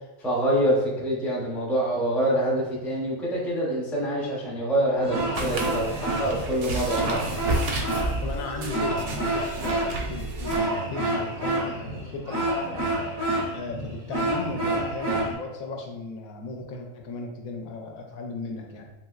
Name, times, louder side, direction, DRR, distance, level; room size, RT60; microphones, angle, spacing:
voice 1, 0.2-7.2, right 1 dB, ahead, -5 dB, 0.3 m, -26 dB
sound 1, 5.0-15.3, right 1 dB, 90° right, 1.5 m, -29 dB
sound 2, 5.3-10.6, right 2 dB, 60° right, 0.7 m, -32 dB
voice 2, 6.0-6.7 7.9-12.8 13.5-18.9, left 3 dB, 90° left, 2 dB, 1.0 m, -36 dB
3.4 x 2.9 x 2.3 m, 1.1 s
omnidirectional pair, 1.4 m